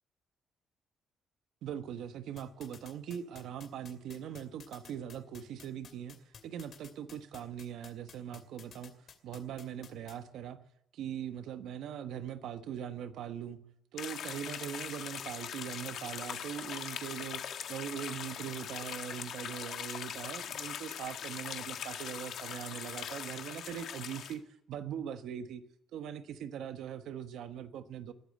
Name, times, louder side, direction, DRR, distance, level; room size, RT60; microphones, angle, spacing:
voice 1, 1.6-10.6 10.9-13.6 13.9-17.4 17.7-24.4 24.7-25.6 25.9-28.1, right 9 dB, 80° right, 9 dB, 1.2 m, -41 dB
sound 1, 2.4-10.2, left 7 dB, 55° left, 2.7 m, -52 dB
sound 2, 14.0-24.3, left 9 dB, 70° left, 1.6 m, -41 dB
20.5 x 8.5 x 7.8 m, 0.81 s
cardioid pair, 115°, 0 cm